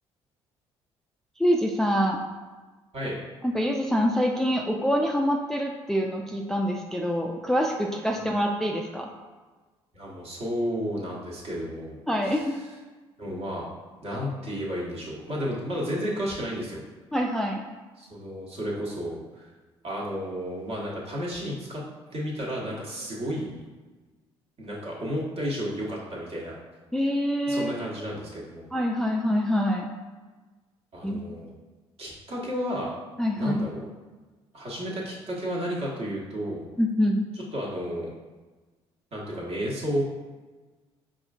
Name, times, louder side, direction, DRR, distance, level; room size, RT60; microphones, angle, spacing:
voice 1, 1.4-2.2 3.4-9.1 12.1-12.5 17.1-17.6 26.9-27.7 28.7-29.9 31.0-31.2 33.2-33.6 36.8-37.2, equal, 5° left, 1 dB, 0.3 m, -25 dB
voice 2, 9.9-12.5 13.2-13.7 14.0-16.8 18.0-19.5 19.8-21.8 22.1-23.7 24.6-26.5 27.5-28.6 30.9-31.5 32.0-32.9 33.4-33.9 34.5-36.6 37.5-38.1 39.1-40.0, equal, 45° right, -4 dB, 1.1 m, -32 dB
4.8 x 2.5 x 2.4 m, 1.3 s
hypercardioid pair, 50°, 14 cm